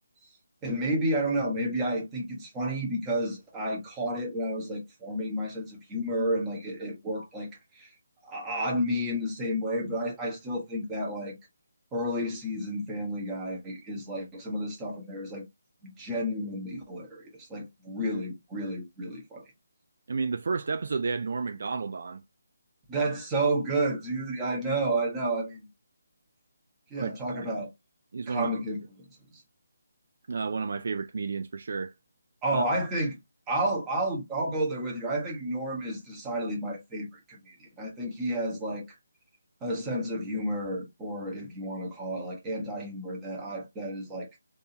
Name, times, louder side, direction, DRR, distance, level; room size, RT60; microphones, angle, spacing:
voice 1, 0.6-7.5 7.7-7.9 8.2-11.3 11.9-15.4 16.0-19.4 22.9-25.7 26.9-27.7 28.3-29.1 32.4-33.2 33.5-38.9 39.6-44.3, right 1 dB, 15° right, 1.2 m, -31 dB
voice 2, 20.1-22.2 27.0-27.5 28.1-28.5 30.3-31.9 32.5-32.6, right 4 dB, 60° right, 0.3 m, -31 dB
3.4 x 2.8 x 2.8 m
figure-of-eight pair, 155°, 0 cm